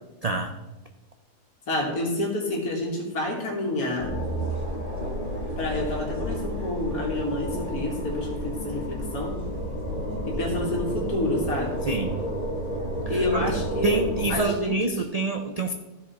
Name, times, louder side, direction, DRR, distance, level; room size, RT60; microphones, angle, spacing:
voice 1, 0.2-0.5 11.9-12.2 13.1-13.5 13.8-15.7, right 3 dB, 85° right, 5 dB, 0.3 m, -27 dB
voice 2, 1.7-4.1 5.6-9.3 10.2-11.8 13.1-14.0 14.3-14.7, left 1 dB, 75° left, 0 dB, 2.4 m, -28 dB
sound 1, 4.0-14.4, equal, 35° left, 2.0 m, -31 dB
14.5 x 4.9 x 4.2 m, 1.1 s
omnidirectional pair, 1.5 m